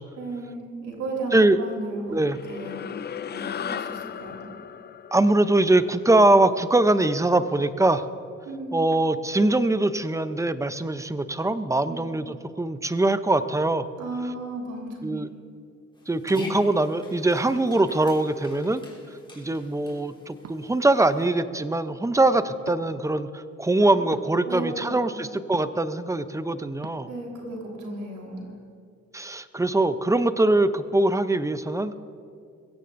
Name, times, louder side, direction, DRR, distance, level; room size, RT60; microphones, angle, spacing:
voice 1, 0.2-2.1 2.5-2.9 3.3-4.5 8.4-8.8 11.8-12.1 14.0-15.2 23.8-23.9 24.4-25.2 27.1-28.5, right 2 dB, 75° right, 0 dB, 3.9 m, -34 dB
sound 1, 2.2-6.8, left 8 dB, 35° left, 0.4 m, -36 dB
voice 2, 5.1-8.1 8.7-13.9 15.0-15.3 16.1-18.8 19.4-27.1 29.1-32.0, right 2 dB, 10° right, 12 dB, 0.6 m, -22 dB
Dog, 15.9-21.3, left 2 dB, 15° left, 3.4 m, -41 dB
sound 2, 18.7-18.9 20.4-20.8 22.6-22.8 24.1-24.3 25.5-25.9 26.8-27.0, right 8 dB, 55° right, 0.8 m, -42 dB
22.0 x 16.5 x 2.6 m, 2.4 s
cardioid pair, 90°, 30 cm